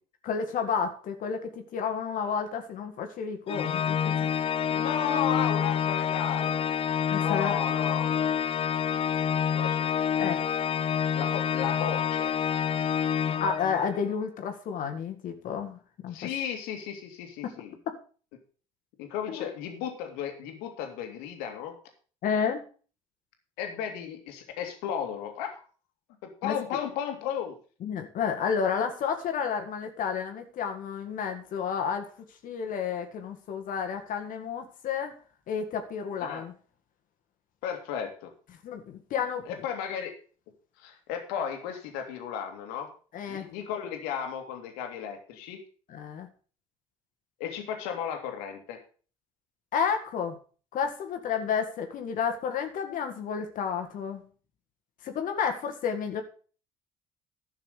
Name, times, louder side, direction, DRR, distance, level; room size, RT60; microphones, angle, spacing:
voice 1, 0.2-4.4 7.1-7.6 10.2-10.4 13.4-16.3 17.4-17.6 19.3-19.4 22.2-22.6 26.4-26.6 27.8-35.1 35.5-36.5 38.6-39.6 43.1-43.5 45.9-46.3 49.7-50.3 50.7-54.2 55.0-56.2, left 6 dB, 60° left, 5 dB, 1.9 m, -31 dB
Organ, 3.5-14.1, left 8 dB, 40° left, 0.5 m, -27 dB
voice 2, 4.7-6.7 7.2-8.3 9.4-9.9 11.1-12.4 16.1-17.7 19.0-21.7 23.6-25.6 26.2-27.5 36.2-36.4 37.6-38.3 39.5-40.2 40.8-42.9 43.3-45.6 47.4-48.8, left 8 dB, 75° left, 4 dB, 2.3 m, -34 dB
11.5 x 5.9 x 6.5 m, 0.39 s
hypercardioid pair, 60°, 16 cm